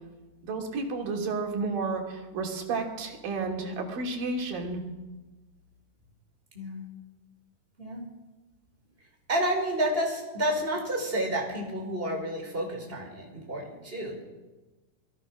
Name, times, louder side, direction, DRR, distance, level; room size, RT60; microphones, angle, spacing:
voice 1, 0.4-4.8, right 3 dB, 90° right, 2 dB, 4.4 m, -31 dB
voice 2, 6.5-6.9 7.8-8.1 9.3-14.2, right 1 dB, 15° right, 1 dB, 4.8 m, -30 dB
27.5 x 20.5 x 6.3 m, 1.2 s
omnidirectional pair, 3.9 m